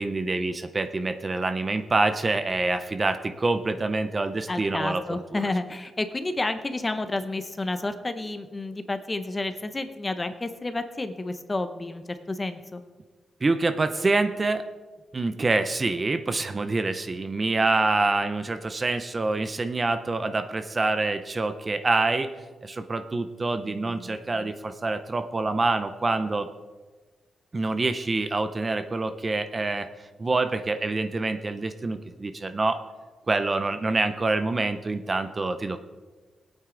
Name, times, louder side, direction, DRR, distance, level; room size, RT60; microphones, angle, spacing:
voice 1, 0.0-5.4 13.4-14.6 15.1-22.3 22.6-26.5 27.5-29.9 30.2-32.8 33.3-35.8, right 3 dB, 20° right, 9 dB, 0.5 m, -26 dB
voice 2, 4.5-12.8, left 2 dB, 15° left, 10 dB, 0.7 m, -30 dB
20.5 x 8.9 x 3.8 m, 1.3 s
wide cardioid pair, 180°, 0 cm